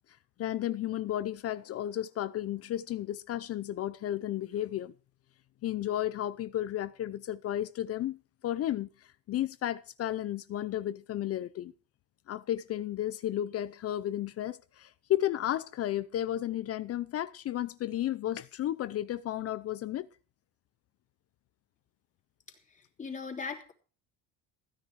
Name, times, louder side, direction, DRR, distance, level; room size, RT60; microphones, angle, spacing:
voice 1, 0.4-4.9 5.6-8.2 8.4-8.9 9.3-11.7 12.3-20.1, left 12 dB, 45° left, 0.7 m, -33 dB
voice 2, 22.7-23.7, left 5 dB, 20° left, 3.1 m, -39 dB
15.5 x 9.9 x 4.7 m
cardioid pair, 125°, 34 cm